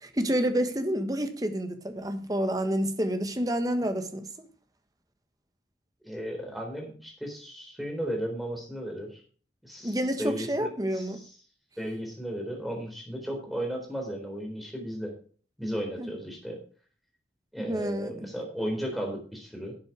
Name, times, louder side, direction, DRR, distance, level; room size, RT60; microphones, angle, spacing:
voice 1, 0.0-4.3 9.8-11.2 16.0-16.1 17.6-18.3, equal, 20° right, 1.3 m, -29 dB
voice 2, 6.0-9.2 9.6-11.3 11.8-15.1 15.6-16.6 17.5-19.8, equal, ahead, 3.8 m, -35 dB
11.5 x 7.9 x 4.7 m
head